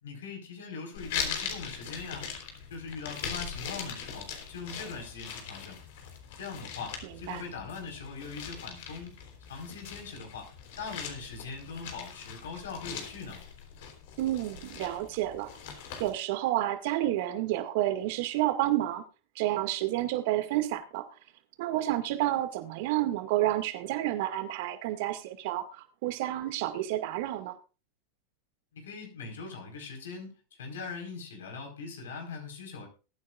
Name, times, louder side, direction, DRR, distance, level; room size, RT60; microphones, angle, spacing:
voice 1, 0.0-2.3 2.7-5.8 6.4-9.1 9.5-13.4 28.7-30.3 30.6-32.9, left 5 dB, 80° left, 3 dB, 4.5 m, -41 dB
sound 1, 0.9-16.1, left 7 dB, 65° left, 3.8 m, -41 dB
voice 2, 14.2-15.5 16.0-19.0 19.4-21.0 21.6-27.5, right 14 dB, 65° right, 8 dB, 2.1 m, -30 dB
21.0 x 9.5 x 2.5 m, 0.33 s
hypercardioid pair, 105°, 0 cm